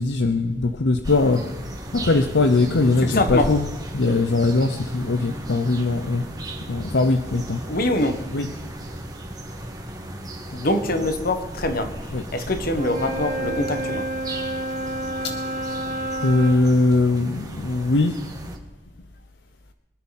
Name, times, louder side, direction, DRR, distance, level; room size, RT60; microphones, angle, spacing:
voice 1, 0.0-1.5 1.9-3.7 3.9-6.3 6.7-7.6 8.3-8.5 12.1-12.2 15.2-15.4 16.2-18.2, left 3 dB, 75° left, 7 dB, 0.8 m, -20 dB
sound 1, 1.0-18.6, right 1 dB, 20° right, 1.9 m, -36 dB
voice 2, 3.0-3.5 7.7-8.2 10.5-14.0, left 1 dB, 55° left, 7 dB, 1.6 m, -24 dB
Wind instrument woodwind instrument, 12.7-16.6, right 1 dB, 45° right, 1.9 m, -29 dB
24.5 x 9.8 x 4.2 m, 1.2 s
head